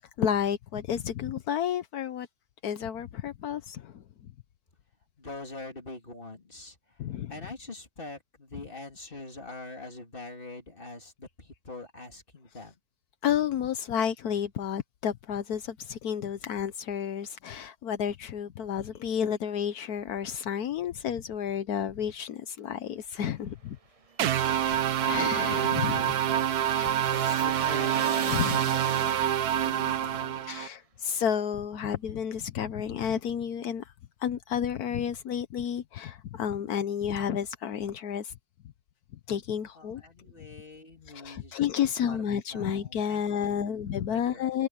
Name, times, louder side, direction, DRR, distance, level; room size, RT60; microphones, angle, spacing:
voice 1, 0.2-2.3 2.6-4.0 7.0-7.3 13.2-23.8 24.4-26.1 26.7-27.5 28.2-28.6 30.5-33.9 34.2-38.3 39.3-40.0 41.1-44.7, left 8 dB, 80° left, 1.4 m, -31 dB
voice 2, 5.2-12.8 25.0-26.6 27.1-30.8 39.7-42.2 42.5-43.8 44.1-44.5, left 2 dB, 35° left, 3.4 m, -44 dB
sound 1, 24.1-29.6, right 5 dB, 40° right, 0.5 m, -40 dB
sound 2, 24.2-30.7, right 10 dB, 85° right, 1.4 m, -26 dB
omnidirectional pair, 1.6 m